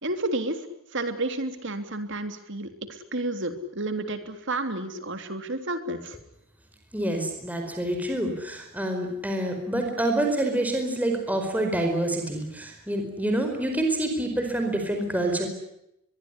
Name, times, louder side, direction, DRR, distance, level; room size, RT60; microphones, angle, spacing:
voice 1, 0.0-0.6 0.9-6.2, right 2 dB, 55° right, 8 dB, 3.4 m, -31 dB
voice 2, 6.9-15.5, right 1 dB, 5° right, 3 dB, 4.7 m, -27 dB
23.5 x 22.5 x 10.0 m, 0.81 s
head